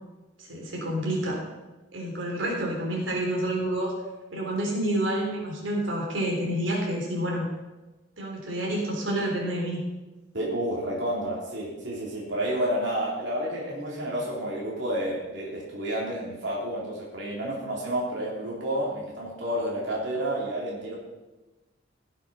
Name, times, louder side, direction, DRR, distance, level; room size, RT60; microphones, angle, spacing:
voice 1, 0.4-1.4 1.9-3.9 4.3-7.5 8.2-9.8, right 1 dB, 90° right, -2 dB, 3.5 m, -28 dB
voice 2, 10.3-21.0, right 1 dB, 65° right, -4 dB, 3.5 m, -30 dB
16.5 x 7.4 x 5.6 m, 1.1 s
head